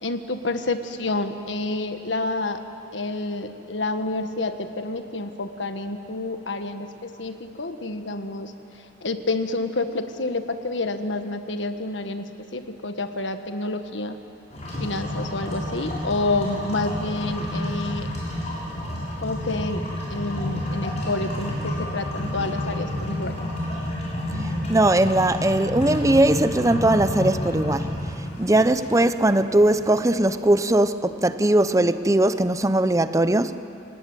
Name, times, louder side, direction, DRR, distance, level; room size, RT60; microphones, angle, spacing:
voice 1, 0.0-2.6 2.9-8.5 9.0-14.2 14.8-18.1 19.2-19.8 20.1-23.4 28.6-28.7, left 2 dB, 80° left, 1.6 m, -28 dB
sound 1, 14.5-30.4, left 1 dB, 40° left, 6.9 m, -30 dB
voice 2, 24.7-27.9 28.4-33.6, right 1 dB, 15° right, 0.7 m, -20 dB
27.5 x 19.0 x 9.1 m
head